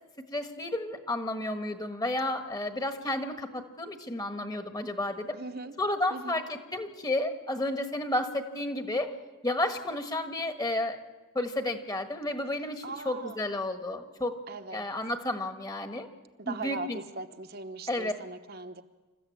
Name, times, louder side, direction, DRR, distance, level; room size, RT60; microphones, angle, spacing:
voice 1, 0.3-5.4 5.8-9.1 9.4-11.0 11.3-14.3 14.7-16.1 16.4-17.0 17.9-18.1, left 1 dB, 15° left, 7 dB, 1.4 m, -32 dB
voice 2, 5.3-5.7 6.1-6.4 12.8-13.4 14.5-14.8 16.4-18.8, right 3 dB, 45° right, 7 dB, 0.9 m, -39 dB
27.5 x 14.0 x 8.6 m, 1.2 s
head